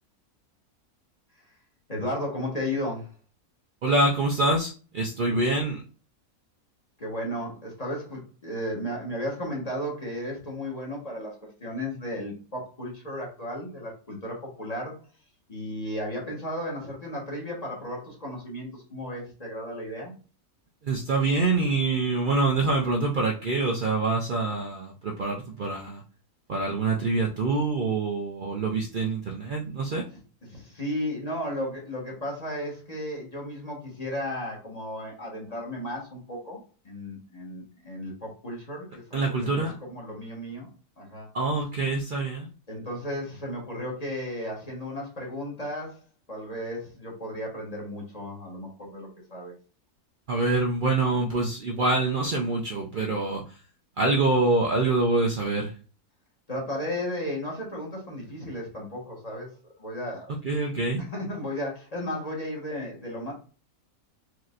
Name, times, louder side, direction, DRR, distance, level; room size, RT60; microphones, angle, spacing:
voice 1, 1.9-3.1 5.3-5.4 7.0-15.0 15.5-20.1 30.4-36.6 36.8-40.7 41.0-41.3 42.7-46.0 46.3-49.5 56.5-59.5 59.8-60.3 61.0-63.3, left 1 dB, 25° left, -3 dB, 1.4 m, -34 dB
voice 2, 3.8-5.8 20.8-26.0 26.5-30.0 39.1-39.8 41.3-42.5 50.3-53.4 54.0-55.7 60.4-61.0, right 3 dB, 80° right, 0 dB, 0.4 m, -25 dB
4.5 x 2.8 x 2.4 m, 0.36 s
omnidirectional pair, 1.6 m